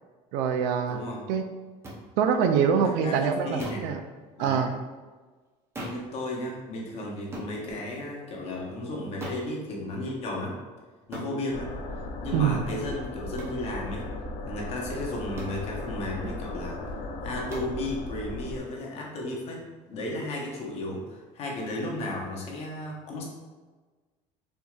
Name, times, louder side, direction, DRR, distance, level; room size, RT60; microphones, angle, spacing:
voice 1, 0.3-1.0 1.3-1.4 2.2-4.0 4.4-4.7 12.3-12.6, right 7 dB, 90° right, 7 dB, 0.4 m, -24 dB
voice 2, 0.9-1.2 2.8-3.9 4.4-4.7 5.8-10.6 11.1-11.7 12.2-14.1 14.5-16.9 17.2-23.2, left 1 dB, 50° left, -2 dB, 0.9 m, -34 dB
sound 1, 1.8-2.0 3.6-3.9 5.7-6.1 7.3-7.5 9.2-9.5 11.1-11.3 13.4-13.6 15.4-15.6 17.5-17.8, right 1 dB, 20° right, 0.7 m, -38 dB
sound 2, 11.5-18.6, left 2 dB, 65° left, 0.6 m, -37 dB
4.4 x 2.7 x 2.4 m, 1.3 s
cardioid pair, 135°, 14 cm